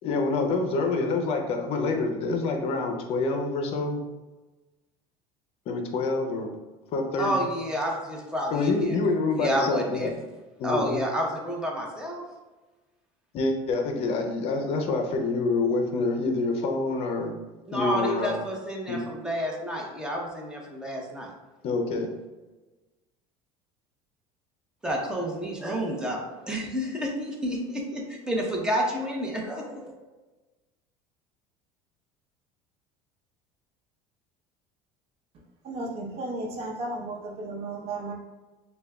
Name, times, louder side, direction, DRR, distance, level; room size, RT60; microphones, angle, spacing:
voice 1, 0.0-4.0 5.7-6.5 6.9-7.4 8.5-10.1 10.6-11.0 13.3-17.4 17.7-18.4 18.9-19.0 21.6-22.1, left 3 dB, 50° left, 4 dB, 0.6 m, -27 dB
voice 2, 7.2-9.0 9.4-10.1 10.6-12.2 17.7-21.3 24.8-26.2 26.5-29.9, equal, 5° right, -1 dB, 0.8 m, -30 dB
voice 3, 35.6-38.1, right 2 dB, 55° right, -1 dB, 0.9 m, -34 dB
6.6 x 2.3 x 2.3 m, 1.2 s
cardioid pair, 130°, 13 cm